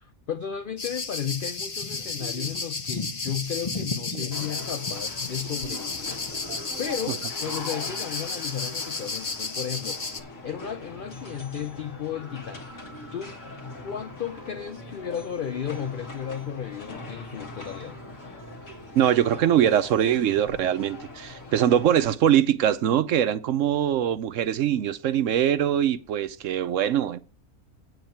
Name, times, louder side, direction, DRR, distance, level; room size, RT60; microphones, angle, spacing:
voice 1, 0.0-6.2 6.8-12.8 13.1-13.4 13.8-18.0, left 8 dB, 75° left, 0.4 m, -34 dB
sound 1, 0.8-10.2, left 4 dB, 30° left, 0.7 m, -33 dB
sound 2, 4.3-22.1, left 2 dB, 60° left, 2.0 m, -42 dB
voice 2, 6.5-6.8 7.1-7.2 18.9-27.2, right 10 dB, 65° right, 0.9 m, -23 dB
8.9 x 8.0 x 4.4 m
omnidirectional pair, 1.5 m